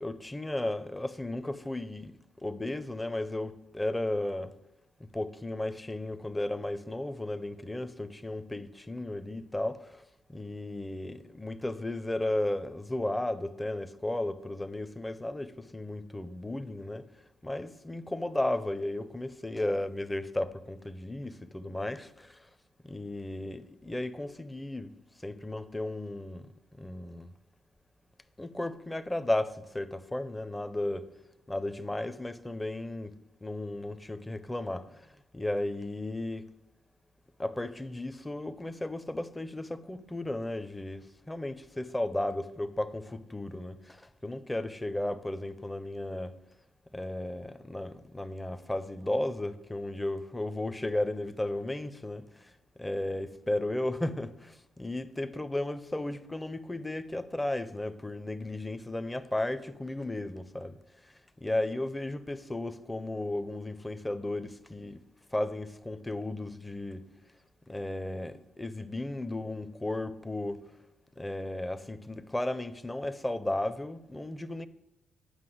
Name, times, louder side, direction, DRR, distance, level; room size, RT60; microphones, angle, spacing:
voice 1, 0.0-2.1 2.4-4.5 5.1-10.0 10.3-17.0 17.4-22.4 22.8-24.9 25.2-26.5 26.8-27.3 28.4-31.1 31.5-33.2 33.4-35.0 35.3-36.5 37.4-46.4 46.9-52.5 52.8-60.8 61.4-65.0 65.3-67.1 67.7-70.6 71.2-74.7, left 1 dB, 10° left, 0.6 m, -34 dB
9.7 x 5.6 x 7.8 m
cardioid pair, 90°, 0 cm